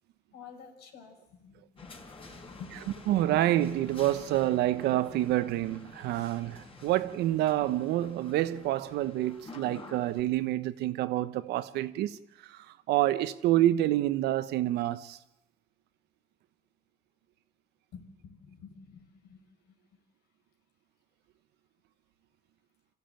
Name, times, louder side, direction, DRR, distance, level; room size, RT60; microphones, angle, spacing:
voice 1, 0.3-1.9 2.2-2.7 17.9-19.8, left 6 dB, 80° left, 5.3 m, -50 dB
sound 1, 1.8-10.2, left 2 dB, 30° left, 4.4 m, -49 dB
voice 2, 3.1-15.2, right 14 dB, 85° right, 1.1 m, -28 dB
26.0 x 15.0 x 9.1 m
cardioid pair, 110°, 17 cm